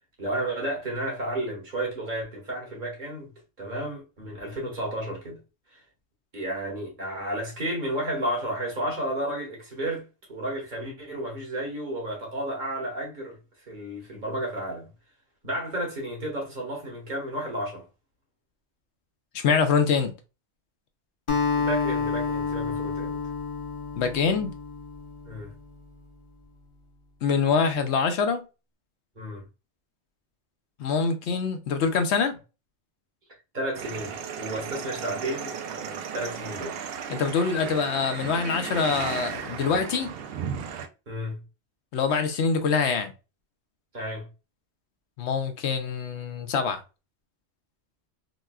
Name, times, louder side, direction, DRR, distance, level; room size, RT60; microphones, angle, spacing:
voice 1, 0.2-3.3 3.6-5.4 5.7-5.8 6.3-13.4 13.7-14.9 15.4-17.9 21.6-23.2 25.2-25.5 29.2-29.4 33.5-36.8 41.1-41.4 43.9-44.3, right 1 dB, 45° right, 1.5 m, -32 dB
voice 2, 19.3-20.1 24.0-24.5 27.2-28.4 30.8-32.3 37.1-40.1 41.9-43.1 45.2-46.8, left 5 dB, 75° left, 0.9 m, -25 dB
Acoustic guitar, 21.3-25.8, left 5 dB, 30° left, 0.7 m, -29 dB
sound 1, 33.7-40.9, right 7 dB, 65° right, 0.7 m, -35 dB
4.0 x 2.3 x 2.2 m
omnidirectional pair, 1.2 m